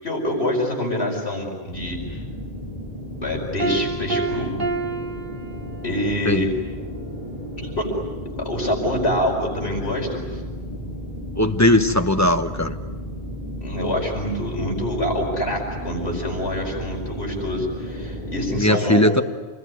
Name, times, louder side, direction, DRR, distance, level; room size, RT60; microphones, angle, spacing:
voice 1, 0.0-2.2 3.2-4.5 5.8-6.5 7.6-7.9 8.4-10.4 13.6-19.1, left 1 dB, 85° left, 0 dB, 5.2 m, -26 dB
sound 1, 1.7-18.6, equal, 35° left, 4.6 m, -33 dB
Piano, 3.6-6.1, right 3 dB, 60° right, 2.2 m, -28 dB
voice 2, 11.4-12.8 18.6-19.2, left 1 dB, 15° left, 7 dB, 1.2 m, -18 dB
28.0 x 21.0 x 9.6 m, 1.4 s
omnidirectional pair, 1.1 m